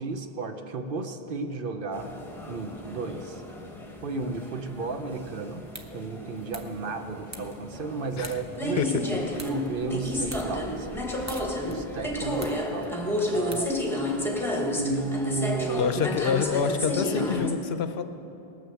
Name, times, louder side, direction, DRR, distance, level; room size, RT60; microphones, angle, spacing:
voice 1, 0.0-2.1 2.5-3.4 4.0-5.6 5.9-9.2 9.4-10.9 11.7-13.0 13.3-13.8 14.8-15.9, right 3 dB, 60° right, 6 dB, 0.9 m, -33 dB
sound 1, 1.9-17.5, left 1 dB, ahead, 1.1 m, -32 dB
sound 2, 5.6-14.3, right 1 dB, 20° right, 0.7 m, -48 dB
voice 2, 15.8-18.0, left 7 dB, 75° left, 9 dB, 0.9 m, -26 dB
18.5 x 6.3 x 7.0 m, 3.0 s
omnidirectional pair, 1.1 m